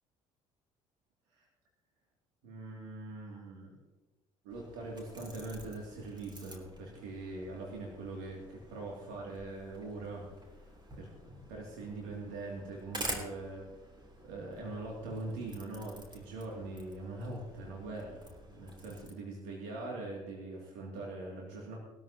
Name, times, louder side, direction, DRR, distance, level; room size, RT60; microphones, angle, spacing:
voice 1, 2.4-3.7 4.4-10.7 11.0-13.6 14.2-21.8, right 2 dB, 70° right, -2 dB, 2.7 m, -42 dB
sound 1, 4.5-19.1, right 1 dB, 25° right, 3.2 m, -48 dB
19.5 x 13.0 x 2.9 m, 1.2 s
figure-of-eight pair, 55°, 18 cm